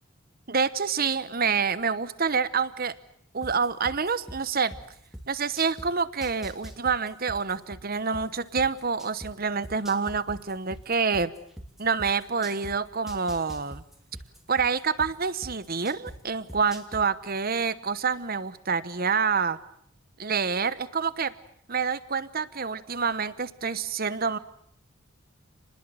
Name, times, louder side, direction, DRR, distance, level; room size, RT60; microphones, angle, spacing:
voice 1, 0.5-2.9 3.3-4.7 5.3-11.3 11.8-13.8 14.5-19.6 20.2-21.3 21.7-24.4, right 5 dB, 45° right, 15 dB, 1.0 m, -27 dB
sound 1, 3.4-5.9 6.2-9.3 9.6-12.7 13.1-16.2 16.5-17.0, equal, ahead, 2.9 m, -41 dB
30.0 x 20.5 x 7.8 m, 0.65 s
head